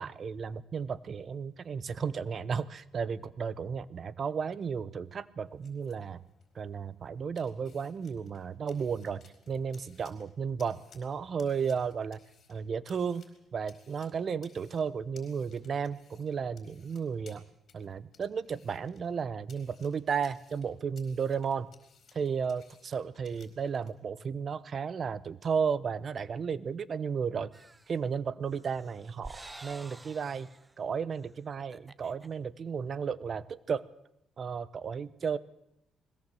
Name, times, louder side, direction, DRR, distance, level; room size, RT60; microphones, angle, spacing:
voice 1, 0.0-6.2 6.5-12.2 12.5-13.2 13.5-17.4 17.7-21.7 22.1-27.5 27.9-30.5 30.8-33.9 34.4-35.4, right 6 dB, 50° right, 18 dB, 0.9 m, -34 dB
sound 1, 5.4-23.9, left 6 dB, 55° left, 4.4 m, -63 dB
sound 2, 27.5-28.0 28.5-30.7 31.1-31.3 31.6-32.3, right 2 dB, 15° right, 0.9 m, -49 dB
21.0 x 17.0 x 7.8 m, 0.80 s
cardioid pair, 90°, 0 cm